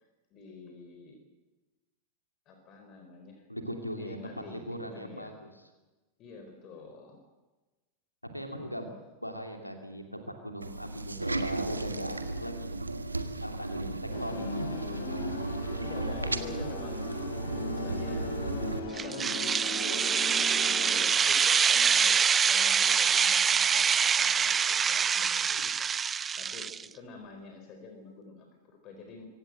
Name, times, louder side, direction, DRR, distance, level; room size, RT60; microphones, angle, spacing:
voice 1, 0.3-1.2 2.5-3.4 4.0-5.4 6.2-7.2 13.6-14.0 15.6-18.3 19.0-29.3, left 3 dB, 35° left, 4 dB, 4.3 m, -48 dB
voice 2, 3.5-5.5 8.2-8.8 9.2-12.8 13.4-14.9, equal, 90° left, 5 dB, 2.7 m, -39 dB
sound 1, 10.6-18.8, right 2 dB, 80° right, 1.5 m, -35 dB
sound 2, 14.1-21.0, left 2 dB, 55° left, 4.3 m, -38 dB
sound 3, 19.0-26.8, right 7 dB, 20° right, 0.6 m, -25 dB
25.0 x 17.0 x 7.8 m, 1.2 s
figure-of-eight pair, 90°, 0 cm